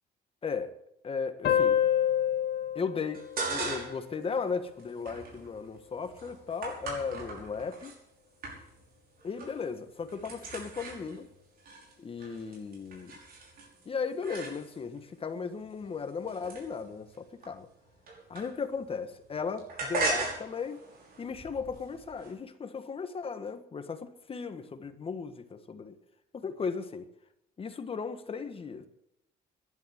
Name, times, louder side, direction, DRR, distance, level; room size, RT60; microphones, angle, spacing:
voice 1, 0.4-0.7 1.0-1.8 2.7-7.9 9.2-11.3 12.0-13.1 13.8-17.7 18.3-20.8 21.2-26.0 26.3-27.1 27.6-28.9, left 5 dB, 30° left, 1.5 m, -36 dB
sound 1, 1.4-4.6, left 10 dB, 70° left, 1.5 m, -29 dB
sound 2, 3.1-4.1 4.5-8.0 8.4-8.9 9.2-9.7 9.9-15.0 15.6-18.9 19.1-22.3, right 3 dB, 60° right, 5.6 m, -39 dB
11.0 x 10.5 x 9.5 m
cardioid pair, 120°, 18 cm